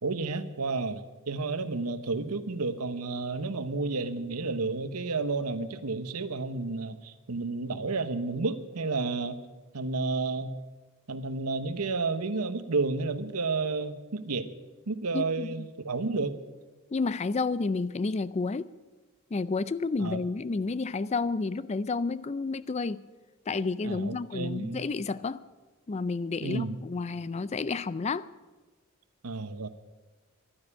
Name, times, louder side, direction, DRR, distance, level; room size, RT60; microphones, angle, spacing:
voice 1, 0.0-9.4 9.7-10.5 11.1-14.5 14.9-16.4 20.0-20.2 23.8-24.8 26.4-26.8 29.2-29.7, right 3 dB, 85° right, 12 dB, 1.0 m, -31 dB
voice 2, 15.1-15.7 16.9-18.7 19.3-23.0 23.5-25.4 25.9-28.3, left 4 dB, 30° left, 17 dB, 0.4 m, -30 dB
12.0 x 10.0 x 9.9 m, 1.2 s
head